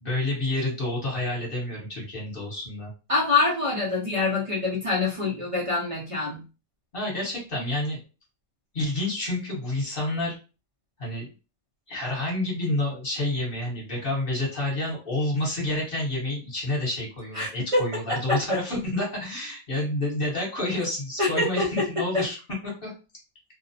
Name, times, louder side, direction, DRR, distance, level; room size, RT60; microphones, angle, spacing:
voice 1, 0.0-2.9 6.9-8.0 8.7-10.4 11.0-11.3 11.9-22.4 22.6-22.9, left 1 dB, 40° left, -3 dB, 1.2 m, -29 dB
voice 2, 3.1-6.4 17.3-17.8 21.2-21.8 22.1-22.2, left 3 dB, 40° right, -4 dB, 0.5 m, -25 dB
2.7 x 2.0 x 2.6 m, 0.32 s
omnidirectional pair, 1.5 m